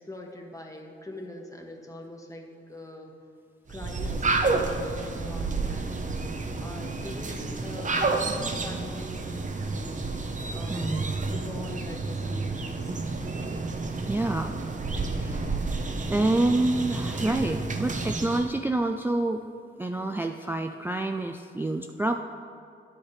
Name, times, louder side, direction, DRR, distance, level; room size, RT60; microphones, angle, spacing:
voice 1, 0.0-3.1 3.7-13.0, left 1 dB, 15° left, 2 dB, 1.2 m, -43 dB
sound 1, 3.7-18.6, right 3 dB, 35° right, 0.7 m, -30 dB
voice 2, 10.7-11.0 14.1-14.5 15.1-15.5 16.1-19.4 19.8-22.2, right 2 dB, 10° right, 5 dB, 0.3 m, -27 dB
10.0 x 7.1 x 3.3 m, 2.5 s
cardioid pair, 80°, 21 cm